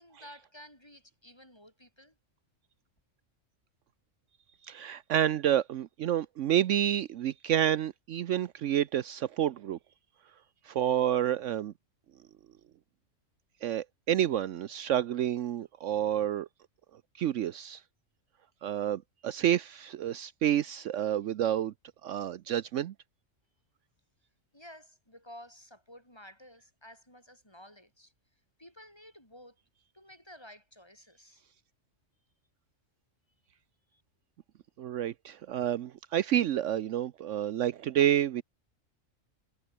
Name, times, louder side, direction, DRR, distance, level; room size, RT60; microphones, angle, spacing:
voice 1, 0.0-2.2 24.5-28.1 28.6-29.6 29.9-31.4 33.9-34.0, equal, 20° left, 7.4 m, -52 dB
voice 2, 4.6-9.8 10.7-11.7 13.6-16.5 17.2-17.8 18.6-21.7 22.0-22.9 34.8-38.4, right 11 dB, 70° right, 1.0 m, -29 dB
omnidirectional pair, 1.4 m